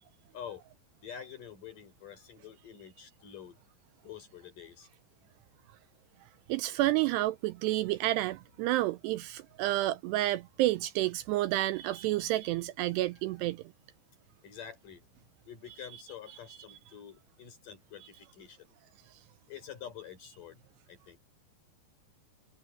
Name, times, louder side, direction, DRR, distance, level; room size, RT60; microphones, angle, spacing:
voice 1, 0.3-0.6 1.0-3.6 4.0-4.9 14.4-15.1 15.5-18.7 19.5-21.2, left 8 dB, 50° left, 5.9 m, -47 dB
voice 2, 6.5-13.6, right 16 dB, 80° right, 2.5 m, -30 dB
omnidirectional pair, 5.1 m